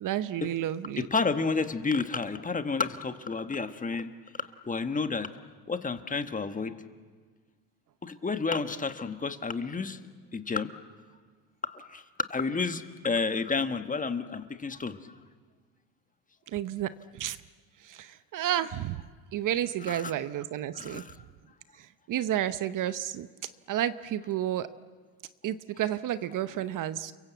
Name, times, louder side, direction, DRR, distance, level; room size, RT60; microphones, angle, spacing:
voice 1, 0.0-1.1 16.5-17.4 17.8-19.0 19.3-21.0 22.1-23.3 23.7-24.7 25.4-27.1, right 11 dB, 45° right, 14 dB, 0.9 m, -31 dB
voice 2, 1.0-4.1 4.7-5.3 5.7-6.7 8.0-10.0 10.3-10.7 11.7-12.0 12.3-15.0 19.9-20.1 20.7-21.1, left 4 dB, 20° left, 9 dB, 1.4 m, -30 dB
30.0 x 22.5 x 8.2 m, 1.5 s
supercardioid pair, 110°, 44 cm